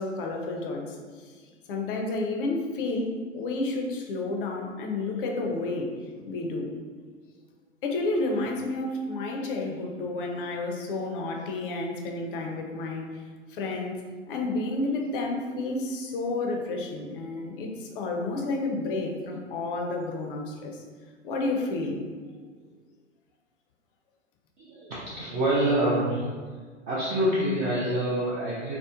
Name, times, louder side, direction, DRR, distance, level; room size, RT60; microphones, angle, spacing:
voice 1, 0.0-5.9 6.2-6.7 7.8-13.2 13.5-14.0 14.3-20.8 21.2-22.0, left 2 dB, 50° left, 2 dB, 0.5 m, -31 dB
voice 2, 24.6-26.3 26.9-28.8, right 1 dB, 20° right, -8 dB, 0.3 m, -26 dB
2.9 x 2.0 x 2.3 m, 1.5 s
figure-of-eight pair, 100°, 36 cm